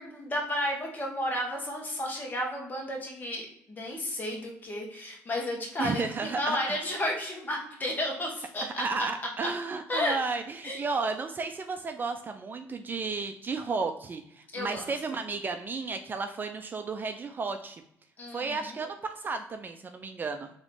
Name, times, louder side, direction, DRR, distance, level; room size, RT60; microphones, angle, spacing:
voice 1, 0.0-9.1 9.9-10.2 10.6-10.8 14.5-14.9 18.2-18.8, left 1 dB, 30° left, 0 dB, 1.4 m, -32 dB
voice 2, 5.8-6.8 8.6-17.8 18.3-20.5, right 4 dB, 35° right, 7 dB, 0.4 m, -33 dB
3.7 x 3.0 x 3.5 m, 0.73 s
supercardioid pair, 80°, 6 cm